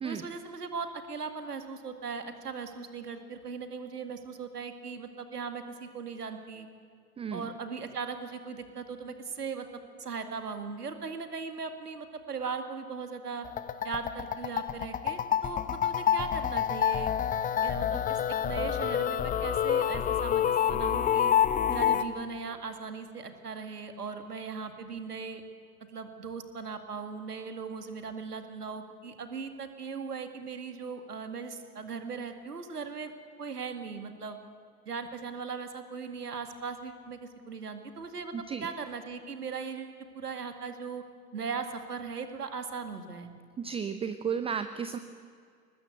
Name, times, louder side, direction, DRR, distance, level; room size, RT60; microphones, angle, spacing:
voice 1, 0.0-6.7 7.3-9.7 10.0-13.5 13.8-17.1 17.6-21.3 21.7-25.4 25.9-33.1 33.4-34.4 34.9-38.3 38.6-41.0 41.3-43.3, right 5 dB, 75° right, 8 dB, 2.2 m, -38 dB
sound 1, 13.4-22.0, left 9 dB, 15° left, 0.8 m, -28 dB
voice 2, 38.3-38.7 43.6-45.0, right 7 dB, 10° right, 11 dB, 0.6 m, -33 dB
22.5 x 20.0 x 8.0 m, 2.2 s
figure-of-eight pair, 85°, 47 cm